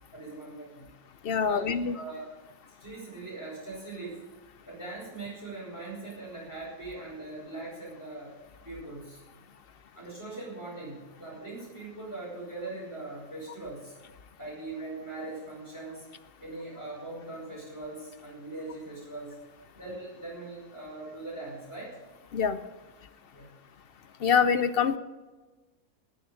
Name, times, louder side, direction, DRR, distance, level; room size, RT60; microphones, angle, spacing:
voice 1, 0.1-0.9 1.4-1.7 1.9-2.3 2.8-4.2 4.6-8.4 8.6-9.2 9.9-14.0 14.4-16.1 16.4-19.3 19.7-22.0 23.3-23.5, right 2 dB, 10° right, -5 dB, 4.9 m, -41 dB
voice 2, 1.2-2.0 22.3-22.6 24.2-25.0, left 6 dB, 65° left, 12 dB, 0.5 m, -25 dB
19.0 x 7.0 x 6.9 m, 1.2 s
omnidirectional pair, 1.6 m